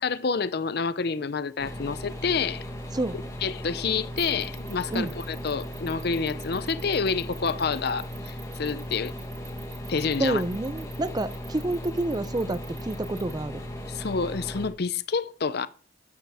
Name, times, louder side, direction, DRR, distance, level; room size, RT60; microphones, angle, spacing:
voice 1, 0.0-2.7 3.4-9.1 9.9-10.4 13.9-15.7, left 5 dB, 50° left, 0.5 m, -28 dB
Roaring Bathroom Fan, 1.6-14.7, equal, 15° left, 1.7 m, -37 dB
sound 1, 4.2-13.3, right 10 dB, 85° right, 3.8 m, -48 dB
voice 2, 10.2-13.6, right 2 dB, 20° right, 0.4 m, -28 dB
13.0 x 9.2 x 3.5 m
head